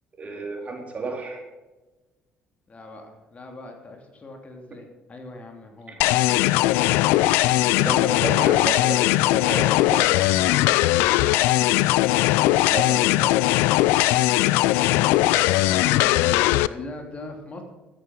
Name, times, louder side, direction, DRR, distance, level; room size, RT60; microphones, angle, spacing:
voice 1, 0.2-1.4 5.9-6.0 7.5-10.3 12.7-13.3, right 4 dB, 40° right, 1 dB, 3.9 m, -32 dB
voice 2, 2.7-6.5 15.7-17.6, left 2 dB, 35° left, 3 dB, 3.2 m, -41 dB
sound 1, 6.0-16.7, left 17 dB, 85° left, 0.4 m, -19 dB
13.5 x 9.5 x 6.4 m, 1.1 s
supercardioid pair, 70°, 4 cm